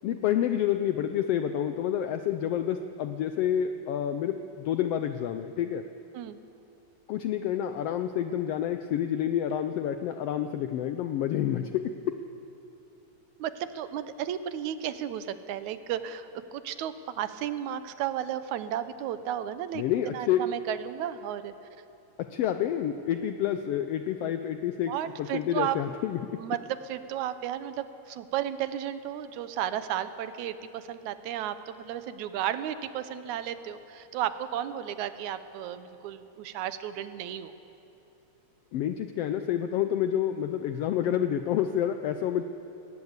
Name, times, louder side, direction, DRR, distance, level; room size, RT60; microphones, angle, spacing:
voice 1, 0.0-5.9 7.1-12.2 19.7-20.5 22.2-26.5 38.7-42.4, left 10 dB, 80° left, 9 dB, 1.4 m, -29 dB
voice 2, 13.4-21.5 24.9-25.8 26.4-37.5, right 10 dB, 80° right, 12 dB, 2.1 m, -33 dB
19.0 x 19.0 x 8.0 m, 2.9 s
omnidirectional pair, 3.4 m